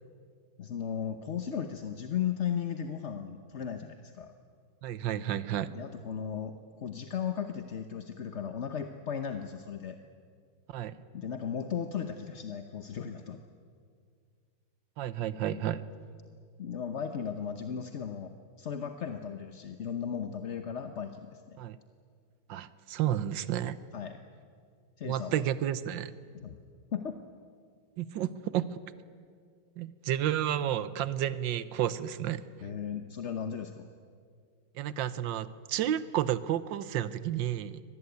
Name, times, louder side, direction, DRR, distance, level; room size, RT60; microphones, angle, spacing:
voice 1, 0.6-4.3 5.7-10.0 11.1-13.4 16.6-21.4 23.9-24.2 25.0-25.4 26.3-26.6 26.9-27.2 32.6-33.9, left 8 dB, 45° left, 7 dB, 1.0 m, -36 dB
voice 2, 4.8-5.7 10.7-10.9 15.0-15.8 21.6-21.8 22.5-23.8 25.0-26.1 28.0-28.8 29.8-32.5 34.7-37.8, right 11 dB, 75° right, 15 dB, 1.6 m, -31 dB
24.5 x 18.5 x 9.5 m, 2.1 s
omnidirectional pair, 2.1 m